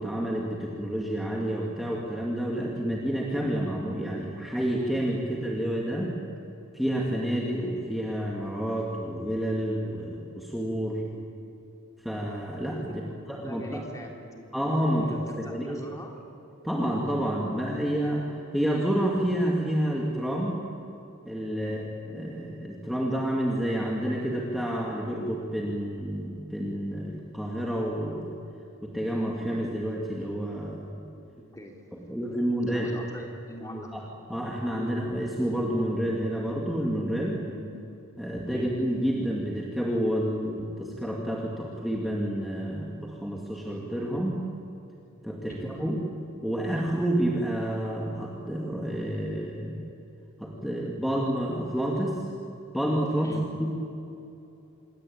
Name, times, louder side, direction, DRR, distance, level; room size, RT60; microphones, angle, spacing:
voice 1, 0.0-6.1 6.7-11.0 12.0-13.0 13.3-13.8 14.5-15.8 16.6-20.7 21.3-28.3 28.8-31.0 32.1-32.9 33.9-34.0 34.3-37.4 38.2-44.4 45.2-46.0 46.4-49.8 50.4-52.2 52.7-53.3 53.6-53.7, equal, ahead, -3 dB, 2.2 m, -29 dB
voice 2, 12.8-13.2 13.4-14.5 14.9-16.1 21.6-21.8 31.5-31.8 32.7-34.1 37.5-37.7 38.5-38.7 45.5-45.7 53.2-53.4, equal, 15° left, 1 dB, 3.4 m, -42 dB
27.0 x 21.5 x 8.8 m, 2.8 s
head